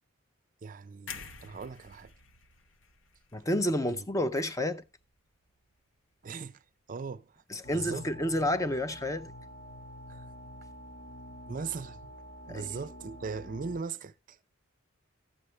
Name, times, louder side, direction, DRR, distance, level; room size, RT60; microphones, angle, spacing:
voice 1, 0.6-2.1 3.9-4.1 6.2-6.6 6.9-7.4 7.7-8.1 10.1-10.3 11.4-12.1 12.5-14.4, right 5 dB, 40° right, 0.4 m, -39 dB
sound 1, 1.1-5.1 5.5-5.7, left 5 dB, 70° left, 1.1 m, -49 dB
voice 2, 3.3-4.8 7.5-9.3 12.5-12.7, left 1 dB, 15° left, 0.6 m, -30 dB
sound 2, 7.6-13.8, equal, 50° left, 1.6 m, -47 dB
13.0 x 8.3 x 3.2 m
head